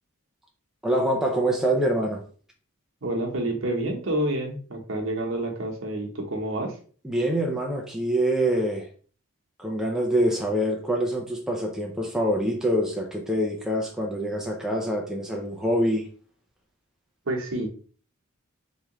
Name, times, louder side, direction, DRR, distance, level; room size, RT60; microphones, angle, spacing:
voice 1, 0.8-2.2 7.0-8.9 9.6-16.0, right 1 dB, ahead, -1 dB, 0.5 m, -25 dB
voice 2, 3.0-6.8 17.3-17.7, right 1 dB, 65° right, 1 dB, 1.0 m, -28 dB
3.6 x 3.1 x 3.0 m, 0.42 s
head